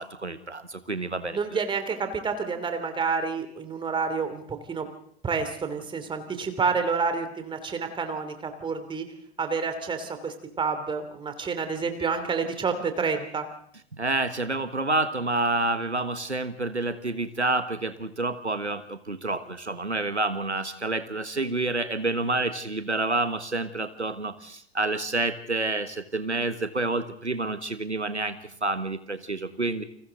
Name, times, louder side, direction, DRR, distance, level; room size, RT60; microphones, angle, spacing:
voice 1, 0.0-1.6 14.0-29.8, right 2 dB, 90° right, 11 dB, 1.4 m, -28 dB
voice 2, 1.3-4.9 5.2-9.0 9.4-13.5, right 5 dB, 15° right, 8 dB, 3.1 m, -29 dB
29.0 x 27.0 x 4.0 m, 0.65 s
figure-of-eight pair, 95°, 33 cm